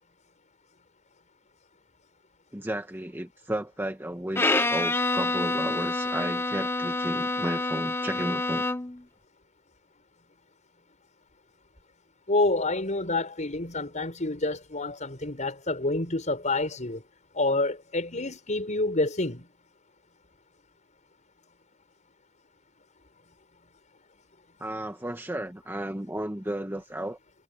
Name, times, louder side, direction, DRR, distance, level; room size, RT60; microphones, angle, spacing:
voice 1, 2.5-8.7 24.6-27.2, right 1 dB, 10° right, 1.3 m, -33 dB
Bowed string instrument, 4.3-9.0, left 2 dB, 10° left, 0.8 m, -27 dB
voice 2, 12.3-17.0 17.3-19.5, left 2 dB, 35° left, 5.9 m, -28 dB
head